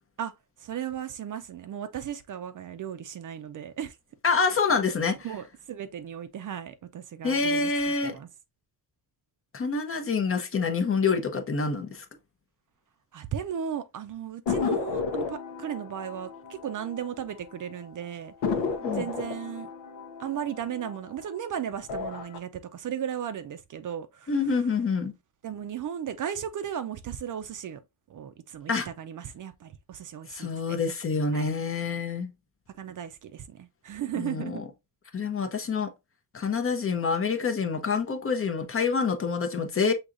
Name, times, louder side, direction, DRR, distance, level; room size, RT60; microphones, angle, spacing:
voice 1, 0.6-4.0 5.2-8.3 13.1-18.3 18.9-19.7 20.2-24.3 25.4-27.8 28.1-30.8 31.3-31.5 32.7-34.6, right 9 dB, 45° right, 0.5 m, -36 dB
voice 2, 4.2-5.2 7.2-8.1 9.5-12.1 18.8-19.1 24.3-25.1 28.7-28.9 30.3-32.3 34.2-34.7 35.1-35.9 36.3-39.9, left 5 dB, 30° left, 0.7 m, -27 dB
sound 1, 14.5-17.5 17.8-17.9 18.4-21.4 21.8-22.4, left 5 dB, 80° left, 0.8 m, -32 dB
6.3 x 2.9 x 2.5 m
cardioid pair, 125°, 43 cm